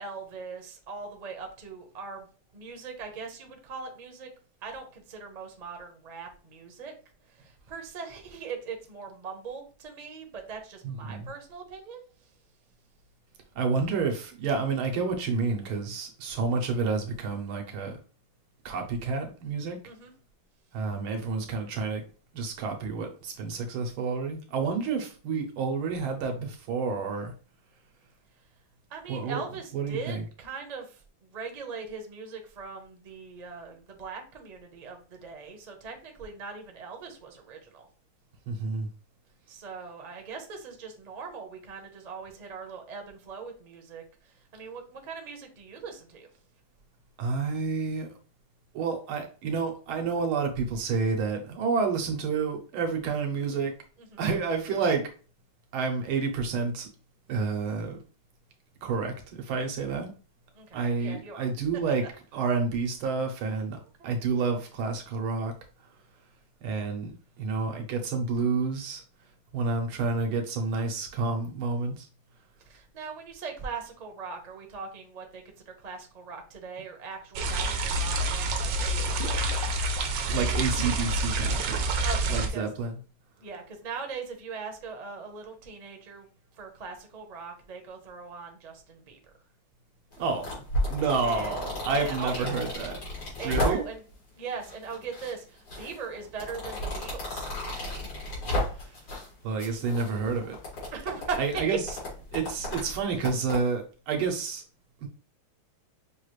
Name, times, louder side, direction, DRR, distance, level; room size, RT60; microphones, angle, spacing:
voice 1, 0.0-2.3 2.5-4.3 4.6-6.9 7.3-12.0 19.8-20.1 28.9-37.9 39.5-46.3 54.0-54.3 60.5-61.5 64.0-64.1 72.6-80.1 82.0-82.7 83.4-86.3 86.6-89.2 91.2-91.6 91.9-92.5 93.4-94.0 94.4-97.5 100.9-101.4 103.2-103.3, right 5 dB, 40° right, 3 dB, 0.6 m, -40 dB
voice 2, 10.8-11.3 13.6-18.0 18.7-19.8 20.7-22.0 22.3-27.3 29.1-30.2 38.5-38.9 47.2-48.2 48.7-53.7 54.2-55.1 55.7-56.9 57.3-58.0 58.8-60.1 60.7-62.1 62.3-65.5 66.6-67.1 67.4-69.0 69.5-72.1 80.3-81.8 82.3-83.0 90.2-90.5 90.9-93.0 93.4-93.9 99.4-100.6 101.4-102.0 102.3-104.6 105.0-105.1, right 4 dB, 85° right, 3 dB, 1.8 m, -29 dB
sound 1, 77.4-82.5, right 2 dB, 70° right, 1.3 m, -27 dB
sound 2, 90.1-94.1 94.6-95.3 95.7-99.3 99.6-103.6, left 1 dB, 85° left, 3.0 m, -33 dB
6.0 x 2.4 x 3.1 m, 0.37 s
omnidirectional pair, 2.2 m